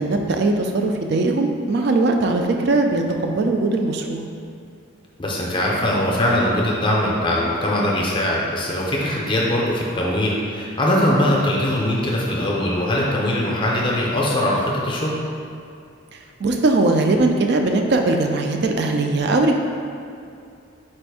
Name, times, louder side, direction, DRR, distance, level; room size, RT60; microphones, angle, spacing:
voice 1, 0.0-4.2 16.4-19.5, right 2 dB, 55° right, 3 dB, 0.4 m, -20 dB
voice 2, 5.2-15.2, left 1 dB, 25° left, -3 dB, 0.6 m, -21 dB
4.3 x 2.6 x 4.8 m, 2.5 s
head